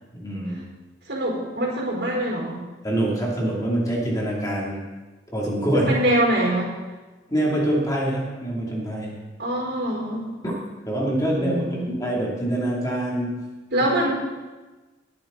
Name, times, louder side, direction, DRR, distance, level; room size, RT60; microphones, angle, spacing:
voice 1, 0.1-0.6 2.8-4.8 5.3-5.9 7.3-9.1 10.4-10.6 10.8-13.5, right 1 dB, 20° left, -4 dB, 2.9 m, -25 dB
voice 2, 1.1-2.6 5.7-6.7 9.4-10.3 11.4-11.9 13.7-14.1, right 1 dB, 65° right, -2 dB, 4.6 m, -24 dB
20.5 x 10.0 x 4.0 m, 1.2 s
head